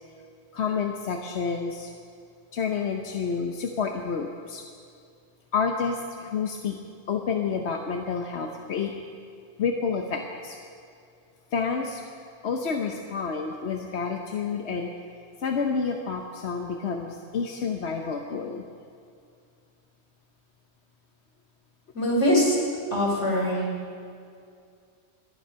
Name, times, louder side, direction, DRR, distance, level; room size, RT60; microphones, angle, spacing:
voice 1, 0.5-1.9 2.5-4.6 5.5-6.8 7.1-8.9 9.6-10.6 11.5-12.0 12.4-14.9 15.4-18.6, left 5 dB, 70° left, 3 dB, 1.2 m, -29 dB
voice 2, 21.9-22.6 22.9-23.6, left 1 dB, 90° left, -3 dB, 4.5 m, -22 dB
25.0 x 9.5 x 5.6 m, 2.3 s
omnidirectional pair, 1.2 m